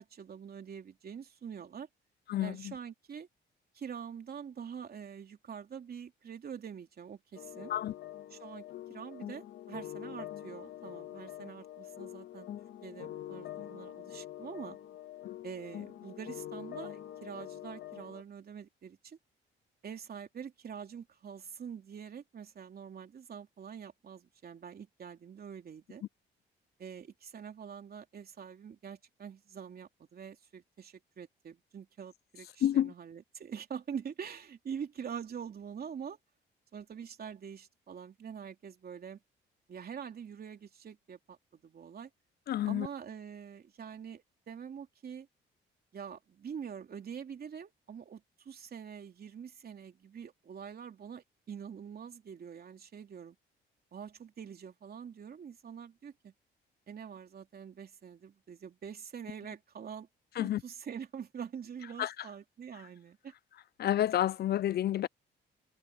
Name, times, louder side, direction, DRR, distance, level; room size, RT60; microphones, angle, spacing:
voice 1, 0.0-1.9 2.4-3.3 3.7-7.7 8.3-12.5 12.8-14.8 15.4-19.2 19.8-26.0 26.8-36.2 36.7-39.2 39.7-42.1 42.7-45.3 45.9-53.4 53.9-56.3 56.9-60.1 60.4-63.3, right 7 dB, 50° right, 3.3 m, -45 dB
voice 2, 2.3-2.7 7.7-7.9 15.2-15.4 32.6-32.9 42.5-42.9 60.4-60.6 62.0-62.3 63.8-65.1, left 12 dB, 55° left, 0.4 m, -30 dB
sound 1, 7.4-18.2, left 12 dB, 70° left, 1.9 m, -45 dB
cardioid pair, 90°, 20 cm